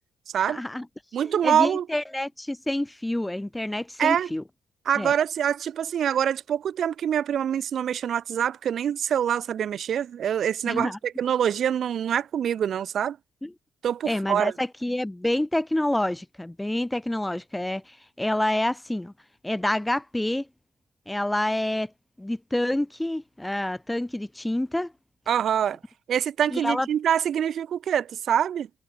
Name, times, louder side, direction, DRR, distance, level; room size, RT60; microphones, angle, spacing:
voice 1, 0.5-0.8 1.2-4.4 5.0-5.1 10.7-11.0 13.4-13.5 14.1-19.1 19.4-20.5 21.1-21.9 22.2-24.9 26.5-26.9, left 1 dB, 10° left, 1.4 m, -28 dB
voice 2, 1.1-1.9 4.0-4.3 4.9-13.2 13.8-14.5 25.3-25.8 26.1-28.7, right 9 dB, 60° right, 2.8 m, -25 dB
cardioid pair, 90°, 0 cm